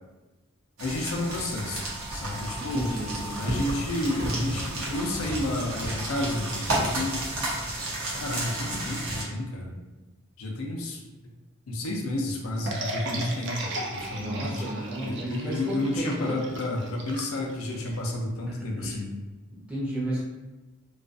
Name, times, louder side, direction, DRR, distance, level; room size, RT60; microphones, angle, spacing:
voice 1, 0.8-1.8 2.1-2.9 3.4-7.3 8.2-9.8 10.4-11.1 11.7-14.7 15.0-19.1, left 1 dB, 85° left, 0 dB, 0.5 m, -31 dB
sound 1, 0.8-9.2, right 1 dB, 80° right, 0.8 m, -32 dB
voice 2, 2.6-3.6 14.1-16.4 18.5-19.2 19.5-20.2, right 1 dB, 5° right, -7 dB, 0.6 m, -33 dB
sound 2, 12.7-18.0, right 1 dB, 55° right, 0.4 m, -35 dB
2.4 x 2.3 x 2.5 m, 1.1 s
head